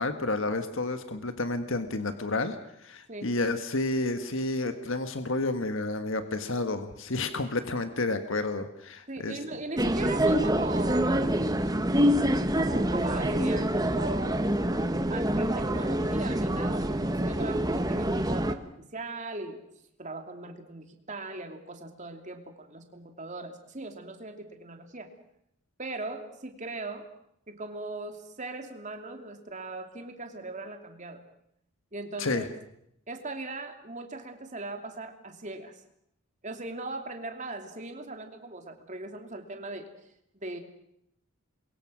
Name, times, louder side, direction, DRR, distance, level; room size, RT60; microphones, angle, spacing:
voice 1, 0.0-9.4 32.2-32.5, left 2 dB, 60° left, 8 dB, 1.6 m, -30 dB
voice 2, 9.1-11.4 12.5-14.5 15.1-18.6 18.9-19.6 20.0-25.1 25.8-27.1 27.5-31.2 31.9-32.5 33.1-35.8 36.4-39.9 40.3-40.6, right 2 dB, 35° right, 5 dB, 2.8 m, -39 dB
sound 1, 9.8-18.5, right 1 dB, 15° right, 1.2 m, -26 dB
29.0 x 22.5 x 6.3 m, 0.75 s
head